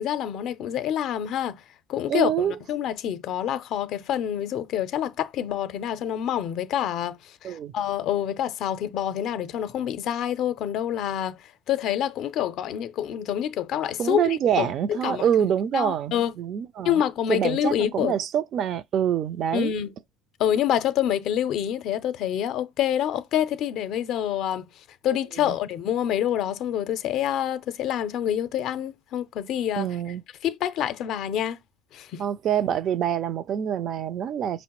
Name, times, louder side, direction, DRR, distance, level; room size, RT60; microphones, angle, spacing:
voice 1, 0.0-1.6 1.9-11.4 11.7-15.2 15.7-16.3 16.8-18.2 19.5-19.9 20.4-24.6 25.0-29.9 30.4-31.6 31.9-32.2, left 10 dB, 60° left, 0.4 m, -27 dB
voice 2, 2.1-2.5 7.4-7.7 14.0-17.0 17.3-19.7 25.4-25.6 29.8-30.2 32.2-34.6, right 9 dB, 50° right, 0.3 m, -26 dB
5.0 x 2.0 x 2.9 m
supercardioid pair, 100°, 0 cm